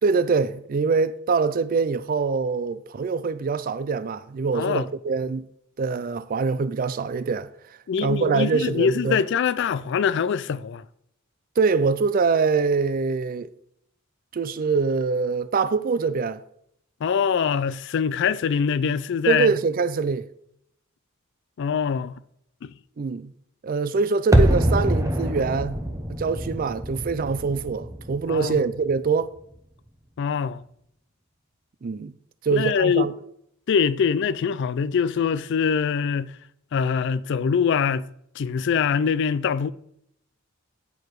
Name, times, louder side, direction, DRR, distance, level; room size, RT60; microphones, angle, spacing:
voice 1, 0.0-5.5 5.8-7.5 8.0-9.2 11.6-13.5 14.3-16.4 19.3-20.3 23.0-23.3 23.6-25.8 26.1-29.3 31.8-32.1 32.4-33.1, right 4 dB, 40° right, 0.4 m, -24 dB
voice 2, 4.5-4.9 7.9-10.8 17.0-19.5 21.6-22.2 22.6-22.7 28.3-28.6 30.2-30.6 32.5-33.1 33.7-36.3 36.7-38.1 38.4-39.7, left 6 dB, 55° left, 0.3 m, -23 dB
sound 1, 24.3-29.3 29.5-29.6, equal, 15° right, 0.8 m, -24 dB
9.4 x 4.7 x 4.6 m
head